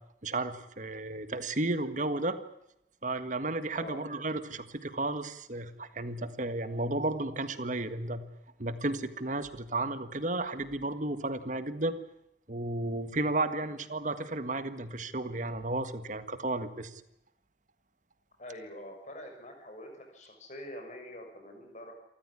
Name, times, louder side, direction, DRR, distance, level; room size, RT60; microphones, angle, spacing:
voice 1, 0.2-2.4 3.0-8.2 8.6-12.0 12.5-17.0, right 2 dB, 45° right, 11 dB, 1.6 m, -33 dB
voice 2, 18.4-21.9, left 1 dB, 40° left, 3 dB, 6.5 m, -45 dB
27.5 x 14.5 x 9.8 m, 0.83 s
head